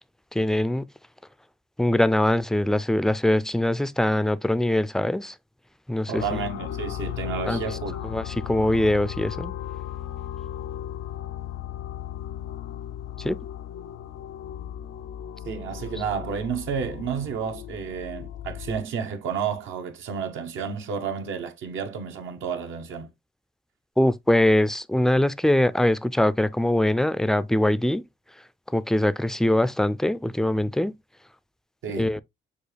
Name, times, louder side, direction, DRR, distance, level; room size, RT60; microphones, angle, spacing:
voice 1, 0.3-0.9 1.8-5.4 5.9-6.4 7.5-7.8 8.0-9.5 13.2-13.4 24.0-28.0 28.7-30.9 32.0-32.2, left 1 dB, ahead, 0.3 m, -22 dB
voice 2, 6.1-7.9 15.4-23.1 31.8-32.1, right 6 dB, 80° right, 1.1 m, -31 dB
sound 1, 6.2-18.8, left 10 dB, 90° left, 0.4 m, -36 dB
6.8 x 2.4 x 3.2 m
cardioid pair, 90°, 20 cm